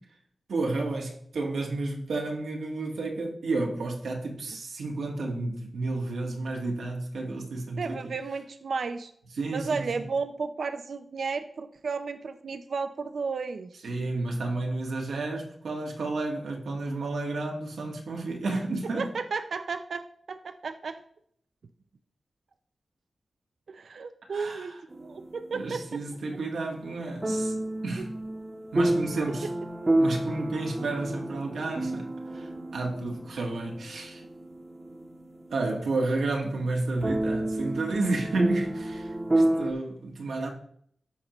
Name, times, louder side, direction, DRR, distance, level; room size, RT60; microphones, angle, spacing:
voice 1, 0.5-8.0 9.3-9.8 13.8-19.1 24.3-24.8 25.5-27.5 27.8-28.1 28.7-29.5 30.0-34.2 35.5-40.5, right 2 dB, 90° right, 1.7 m, -31 dB
voice 2, 7.8-9.1 9.5-13.9 19.0-21.0 23.7-26.0, right 4 dB, 70° right, 0.5 m, -33 dB
sound 1, 24.9-26.2 27.2-36.0 36.3-36.4 37.0-39.7, right 1 dB, 30° right, 1.0 m, -30 dB
13.5 x 5.1 x 3.1 m
wide cardioid pair, 95°, 0 cm